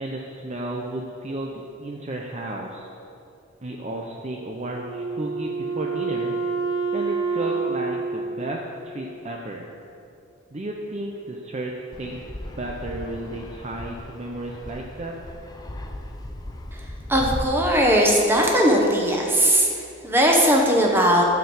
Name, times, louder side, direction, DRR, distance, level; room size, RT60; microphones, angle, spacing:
voice 1, 0.0-2.9 3.6-6.3 6.9-9.7 10.5-11.7 12.0-12.2 12.6-15.1, right 1 dB, 35° right, 0 dB, 0.6 m, -33 dB
Wind instrument woodwind instrument, 4.7-9.2, right 4 dB, 75° right, 1.9 m, -28 dB
Fixed-wing aircraft airplane, 11.9-17.4, left 1 dB, 20° left, 0.6 m, -36 dB
voice 2, 17.1-19.7 20.0-21.2, equal, 10° right, -1 dB, 1.1 m, -18 dB
9.7 x 4.6 x 7.0 m, 2.5 s
head